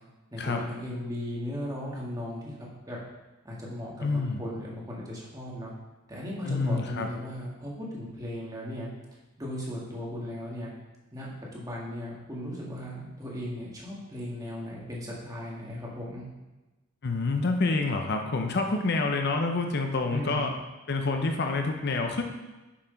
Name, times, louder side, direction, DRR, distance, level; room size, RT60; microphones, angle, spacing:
voice 1, 0.3-2.5 2.9-3.0 3.5-5.7 6.1-8.9 9.4-10.7 11.1-16.3 20.1-20.4, left 1 dB, 20° right, -4 dB, 1.8 m, -37 dB
voice 2, 4.0-4.4 6.4-7.1 17.0-20.5 20.9-22.2, left 3 dB, 55° left, 4 dB, 0.7 m, -27 dB
7.1 x 4.8 x 5.2 m, 1.1 s
head